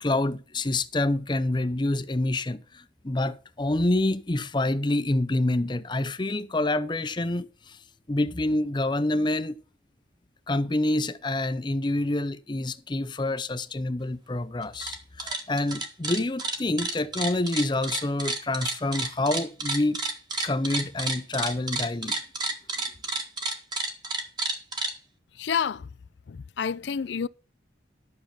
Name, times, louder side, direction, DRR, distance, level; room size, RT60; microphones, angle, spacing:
voice 1, 0.0-7.8 8.1-9.6 10.5-20.0 20.4-22.2, left 2 dB, 25° left, 0.6 m, -27 dB
sound 1, 14.6-14.9 15.2-24.9, right 2 dB, 25° right, 1.5 m, -30 dB
voice 2, 25.4-25.9 26.3-27.3, left 7 dB, 75° left, 0.4 m, -29 dB
11.5 x 6.5 x 5.5 m
head